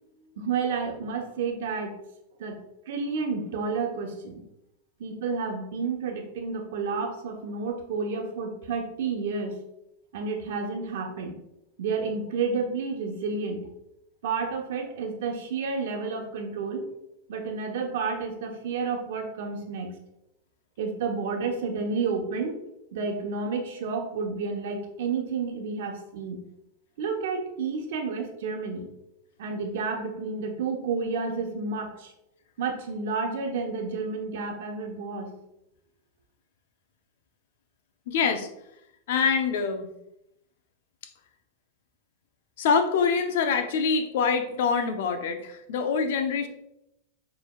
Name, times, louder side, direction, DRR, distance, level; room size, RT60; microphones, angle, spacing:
voice 1, 0.4-2.0 2.4-4.4 5.0-9.6 10.1-11.3 11.8-13.7 14.2-16.8 17.3-19.9 20.8-22.6 22.9-26.4 27.0-28.9 29.4-32.1 32.6-35.4, right 4 dB, 75° right, 3 dB, 0.9 m, -30 dB
voice 2, 38.1-38.5 39.1-39.9 42.6-46.5, left 5 dB, 70° left, 8 dB, 0.6 m, -25 dB
6.9 x 3.3 x 2.3 m, 0.83 s
supercardioid pair, 145°, 0 cm